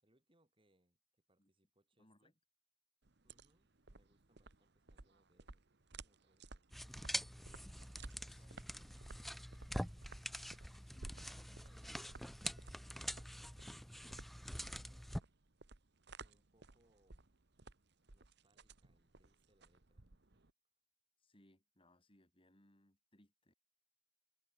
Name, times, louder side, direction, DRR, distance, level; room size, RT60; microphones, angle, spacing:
voice 1, 0.0-2.3 3.2-5.7 5.9-6.7 7.1-7.8 8.3-10.0 11.1-13.3 14.6-15.2 16.2-17.3 18.1-20.5, right 1 dB, 25° right, 4.8 m, -77 dB
voice 2, 2.0-2.3 8.3-8.6 10.8-11.6 21.2-23.5, left 1 dB, 25° left, 4.3 m, -70 dB
sound 1, 3.0-20.5, right 3 dB, 55° right, 1.4 m, -57 dB
sound 2, 6.7-15.2, equal, ahead, 0.5 m, -45 dB
head